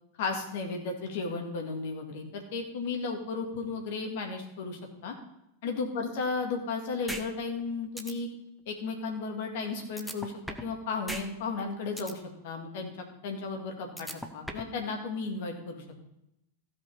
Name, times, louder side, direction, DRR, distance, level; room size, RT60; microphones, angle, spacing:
voice 1, 0.2-5.2 5.6-8.3 8.7-10.3 10.6-12.9 13.2-16.0, left 4 dB, 50° left, 3 dB, 2.1 m, -34 dB
sound 1, 7.1-7.2 7.6-7.7 8.0-8.1 10.0-10.7 11.1-11.2 11.6-12.1 14.0-14.7, equal, ahead, 1.0 m, -37 dB
15.5 x 5.4 x 5.4 m, 0.84 s
figure-of-eight pair, 90°, 0 cm